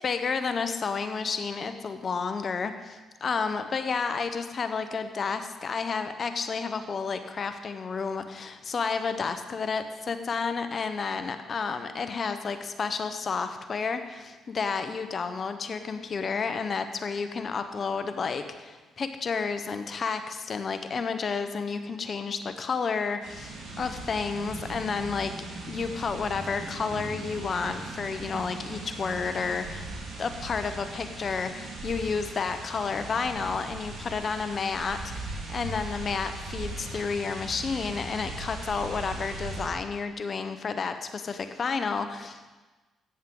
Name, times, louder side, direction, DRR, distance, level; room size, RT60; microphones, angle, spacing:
voice 1, 0.0-25.3 25.7-29.9 30.2-42.6, left 5 dB, 45° left, 8 dB, 0.8 m, -31 dB
sound 1, 23.2-39.7, right 2 dB, 80° right, 3.2 m, -39 dB
14.0 x 9.1 x 3.8 m, 1.2 s
cardioid pair, 75°, 0 cm